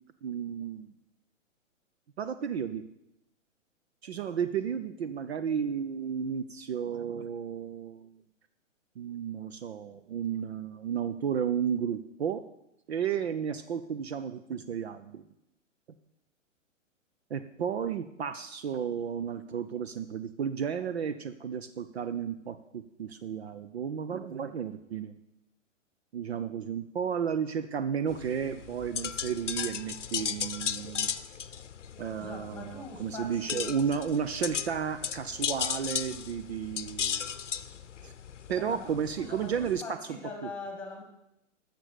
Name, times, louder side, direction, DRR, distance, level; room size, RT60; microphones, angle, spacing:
voice 1, 0.2-0.9 2.2-2.8 4.0-8.1 9.0-12.4 12.9-15.2 17.3-25.1 26.1-31.1 32.0-37.3 38.0-38.1 38.5-40.0 40.4-40.5, right 7 dB, 55° right, 10 dB, 0.7 m, -33 dB
sound 1, 28.1-39.8, left 8 dB, 65° left, 0.7 m, -36 dB
voice 2, 32.2-33.9 38.6-41.0, left 3 dB, 5° left, 3 dB, 2.2 m, -42 dB
12.0 x 6.8 x 7.8 m, 0.84 s
figure-of-eight pair, 115°, 38 cm